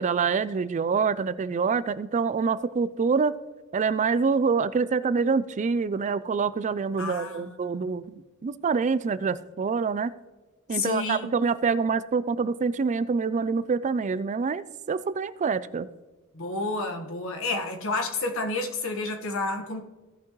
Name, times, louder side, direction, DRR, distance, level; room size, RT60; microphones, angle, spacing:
voice 1, 0.0-3.4 3.7-10.1 10.7-15.9, right 5 dB, 35° right, 0.3 m, -26 dB
voice 2, 7.0-7.9 10.7-11.3 16.3-19.8, left 3 dB, 65° left, 1.5 m, -30 dB
16.5 x 5.9 x 3.1 m
head